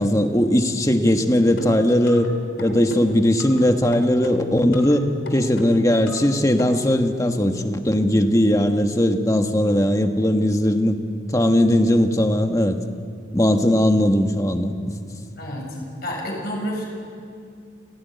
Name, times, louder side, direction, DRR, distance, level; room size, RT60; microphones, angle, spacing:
voice 1, 0.0-2.3 2.6-5.0 5.3-11.0 11.3-12.8 13.3-14.9, left 1 dB, 15° left, 5 dB, 1.4 m, -19 dB
sound 1, 1.6-2.3 2.6-3.6 3.9-5.0 5.3-6.3 6.6-6.7, left 1 dB, 80° left, 3.2 m, -35 dB
voice 2, 15.4-16.8, equal, 55° left, -1 dB, 7.2 m, -29 dB
29.5 x 16.0 x 9.5 m, 2.3 s
head